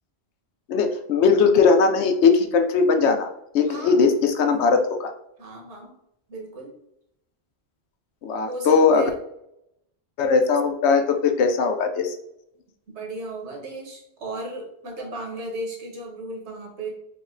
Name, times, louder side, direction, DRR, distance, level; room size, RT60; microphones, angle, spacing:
voice 1, 0.7-3.3 3.5-5.1 8.2-9.0 10.2-12.2, left 5 dB, 80° left, 6 dB, 0.8 m, -19 dB
voice 2, 3.6-4.0 5.4-5.9 6.3-6.7 8.4-9.1 12.9-16.9, right 1 dB, 85° right, 0 dB, 1.3 m, -35 dB
3.8 x 2.1 x 3.6 m, 0.78 s
omnidirectional pair, 1.1 m